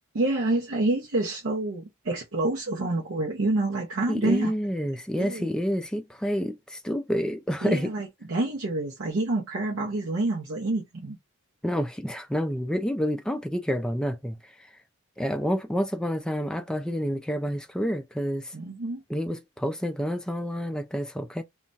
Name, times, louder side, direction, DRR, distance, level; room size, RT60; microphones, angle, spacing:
voice 1, 0.1-4.5 5.2-5.5 7.6-11.2 18.5-19.0, right 2 dB, 65° right, 0.7 m, -27 dB
voice 2, 4.1-7.9 11.6-14.4 15.2-18.5 19.1-21.4, equal, 5° left, 0.3 m, -28 dB
2.3 x 2.1 x 3.8 m
head